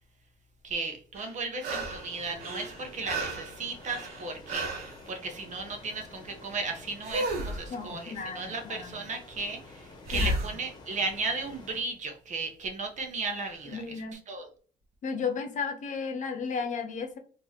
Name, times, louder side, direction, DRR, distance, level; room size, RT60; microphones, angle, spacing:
voice 1, 0.6-13.8 14.3-14.5, right 3 dB, 45° right, 4 dB, 1.1 m, -35 dB
sound 1, 1.1-2.1 2.4-5.0 7.0-7.7 10.0-10.6 13.5-13.6, right 1 dB, 65° right, 1.2 m, -33 dB
sound 2, 1.9-11.8, left 2 dB, 25° left, 1.2 m, -50 dB
voice 2, 7.7-9.0 10.1-10.4 13.6-14.2 15.0-17.2, left 5 dB, 45° left, 6 dB, 1.0 m, -34 dB
4.5 x 2.8 x 3.0 m, 0.42 s
cardioid pair, 110°, 17 cm